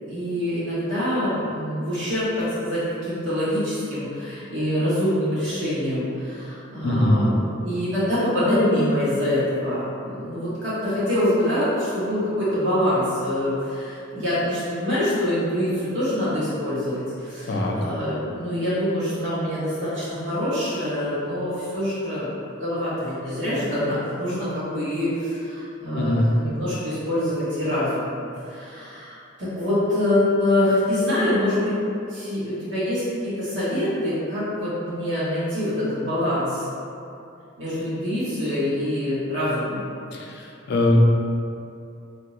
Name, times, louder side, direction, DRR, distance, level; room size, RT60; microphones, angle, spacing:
voice 1, 0.0-28.1 28.5-31.7 32.1-36.7 37.6-39.8, left 1 dB, 65° right, -11 dB, 1.2 m, -25 dB
voice 2, 6.8-7.3 17.4-17.8 25.9-26.3 40.1-41.0, left 1 dB, 55° left, -1 dB, 0.4 m, -22 dB
2.7 x 2.0 x 3.8 m, 2.6 s
head